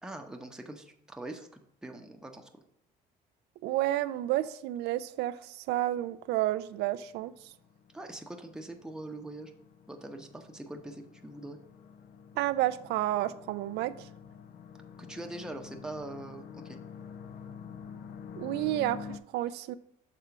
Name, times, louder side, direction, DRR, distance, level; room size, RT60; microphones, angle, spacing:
voice 1, 0.0-2.5 7.9-9.5 9.9-11.6 15.0-16.8, right 2 dB, 5° right, 0.8 m, -43 dB
voice 2, 3.6-7.3 12.4-14.1 18.3-19.7, right 15 dB, 80° right, 0.4 m, -31 dB
sound 1, 6.0-19.2, left 6 dB, 65° left, 0.7 m, -48 dB
6.7 x 3.7 x 5.8 m
cardioid pair, 110°, 17 cm